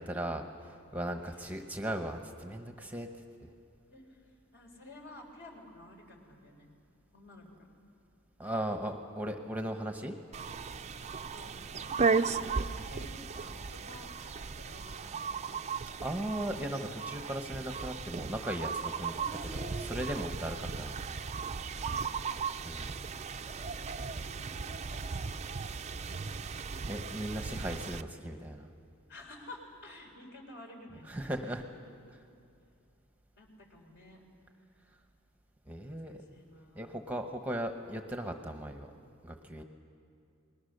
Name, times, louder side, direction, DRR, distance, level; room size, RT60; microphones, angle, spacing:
voice 1, 0.0-3.1 8.4-10.1 16.0-20.9 22.6-22.9 26.9-28.7 31.1-31.6 35.7-36.2 36.7-38.9 39.2-39.6, right 1 dB, 5° right, 5 dB, 1.0 m, -37 dB
voice 2, 1.2-1.6 3.9-6.7 7.1-7.7 11.3-11.6 11.8-15.8 19.2-20.0 21.8-22.5 24.3-25.4 26.2-26.6 29.1-31.5 33.4-34.2 35.8-37.2 39.4-39.6, left 1 dB, 55° left, 1 dB, 4.1 m, -52 dB
sound 1, 10.3-28.0, right 5 dB, 30° right, 0.5 m, -36 dB
30.0 x 21.0 x 6.7 m, 2.5 s
head